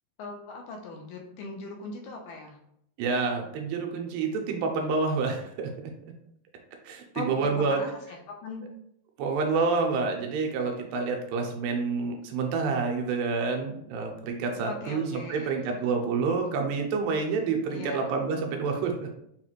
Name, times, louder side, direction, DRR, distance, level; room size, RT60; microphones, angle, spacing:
voice 1, 0.2-2.6 7.1-8.7 14.6-15.8 17.7-18.1, left 3 dB, 80° left, 2 dB, 2.2 m, -40 dB
voice 2, 3.0-5.7 6.8-7.8 9.2-19.1, right 4 dB, 85° right, 2 dB, 2.3 m, -28 dB
5.7 x 2.4 x 3.0 m, 0.74 s
omnidirectional pair, 4.1 m